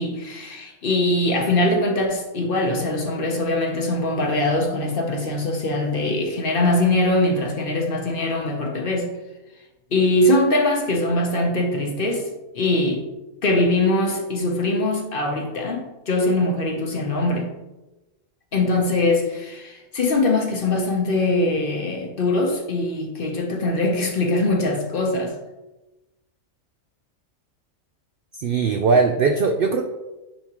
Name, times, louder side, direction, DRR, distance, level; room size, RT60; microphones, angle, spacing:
voice 1, 0.0-9.1 9.9-12.3 12.5-13.0 13.4-17.5 18.5-25.3, left 2 dB, 45° left, 1 dB, 1.0 m, -22 dB
voice 2, 28.4-29.8, right 4 dB, 70° right, 5 dB, 0.5 m, -19 dB
9.3 x 3.6 x 3.0 m, 1.1 s
omnidirectional pair, 1.4 m